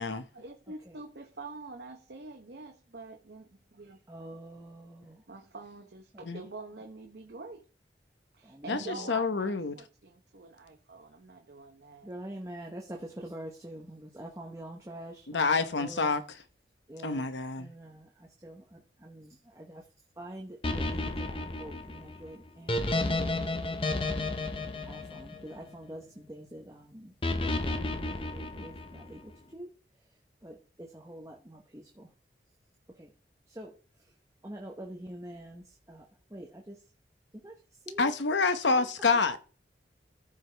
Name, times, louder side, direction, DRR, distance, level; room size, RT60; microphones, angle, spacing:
voice 1, 0.3-4.0 5.3-7.7 8.3-12.1, right 3 dB, 70° right, 0.9 m, -46 dB
voice 2, 4.1-5.2 6.1-6.2 8.4-9.1 12.0-16.1 16.9-17.3 17.6-19.8 20.2-23.7 24.9-27.1 27.4-29.7 30.4-32.1 33.0-33.1 33.5-33.7 34.4-36.0 36.3-36.8 37.4-37.5 37.9-38.1 38.7-38.9, right 1 dB, 15° right, 0.9 m, -45 dB
voice 3, 8.7-9.8 15.3-16.4 17.0-17.7 38.0-39.4, left 4 dB, 90° left, 0.9 m, -28 dB
sound 1, 20.6-25.9 27.2-29.1, left 2 dB, 30° left, 0.8 m, -32 dB
14.0 x 4.9 x 3.3 m
head